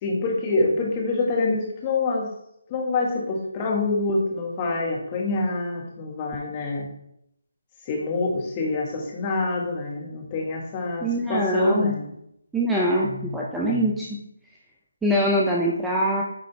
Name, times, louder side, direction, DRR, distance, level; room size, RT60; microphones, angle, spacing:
voice 1, 0.0-2.3 2.7-6.9 7.9-12.1 12.9-13.4 13.6-13.9, left 3 dB, 25° left, -1 dB, 1.6 m, -26 dB
voice 2, 11.0-12.0 12.5-14.1 15.0-16.2, equal, 5° right, -4 dB, 0.6 m, -23 dB
9.8 x 3.8 x 3.4 m, 0.76 s
figure-of-eight pair, 155°, 0 cm